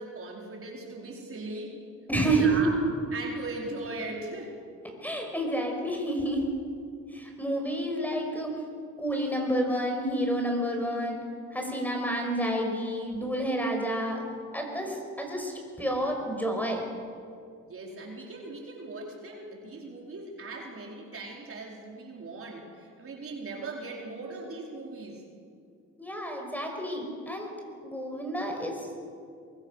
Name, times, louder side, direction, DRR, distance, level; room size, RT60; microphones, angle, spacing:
voice 1, 0.0-1.8 2.2-2.8 3.1-4.6 17.7-25.2, right 2 dB, 45° right, -1 dB, 4.9 m, -39 dB
voice 2, 2.1-2.7 5.0-6.5 7.1-8.5 9.0-11.2 11.5-14.2 14.5-16.9 26.0-27.5 27.8-29.0, right 1 dB, 5° left, 2 dB, 5.8 m, -29 dB
23.0 x 23.0 x 6.7 m, 2.3 s
cardioid pair, 90°, 30 cm